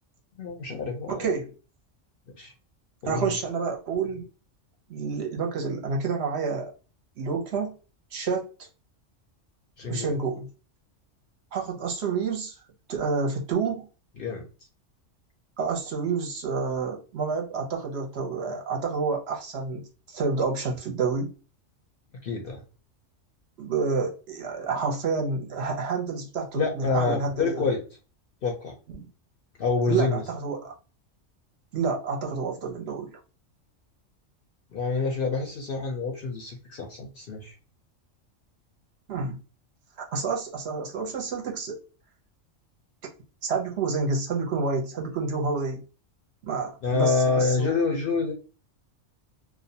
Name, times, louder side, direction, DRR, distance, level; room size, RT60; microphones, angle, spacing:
voice 1, 0.4-1.3 2.4-2.5 3.0-3.3 9.8-10.2 14.2-14.4 22.2-22.6 26.5-27.8 28.4-28.7 29.6-30.2 34.7-37.5 46.8-48.3, left 4 dB, 60° left, 0.6 m, -27 dB
voice 2, 1.1-1.5 3.1-4.3 4.9-6.7 7.2-7.7 8.1-8.7 9.9-10.5 11.5-12.6 12.9-13.9 15.6-21.3 23.6-27.7 28.9-29.1 29.8-30.7 31.7-33.2 39.1-39.4 40.0-41.8 43.4-45.8 46.4-47.8, right 4 dB, 65° right, 0.8 m, -29 dB
2.4 x 2.1 x 2.7 m
omnidirectional pair, 1.3 m